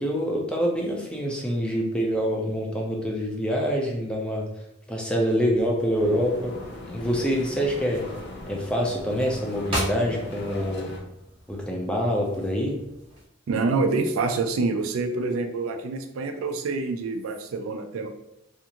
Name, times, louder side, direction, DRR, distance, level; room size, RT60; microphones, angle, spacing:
voice 1, 0.0-4.5 4.9-6.6 6.9-8.1 8.5-10.9 11.5-12.8, equal, 5° left, -1 dB, 0.4 m, -26 dB
sound 1, 5.6-13.3, right 1 dB, 25° right, 0.9 m, -39 dB
sound 2, 5.9-11.0, left 1 dB, 55° left, 0.5 m, -40 dB
voice 2, 13.5-18.1, right 3 dB, 85° right, 6 dB, 0.4 m, -26 dB
2.6 x 2.4 x 2.8 m, 0.84 s
head